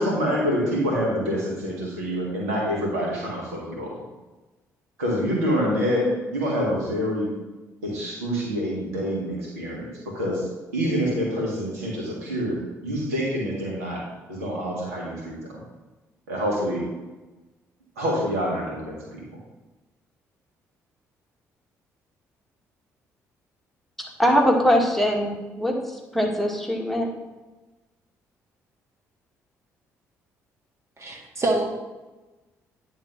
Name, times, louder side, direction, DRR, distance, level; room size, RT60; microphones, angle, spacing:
voice 1, 0.0-4.0 5.0-7.3 7.8-14.0 14.3-15.6 16.3-16.9 18.0-19.2, equal, 90° right, -3 dB, 1.8 m, -26 dB
voice 2, 24.2-27.1, equal, ahead, 1 dB, 1.6 m, -22 dB
voice 3, 31.0-31.7, right 2 dB, 40° right, 1 dB, 1.9 m, -25 dB
9.4 x 3.7 x 5.9 m, 1.1 s
hypercardioid pair, 50°, 8 cm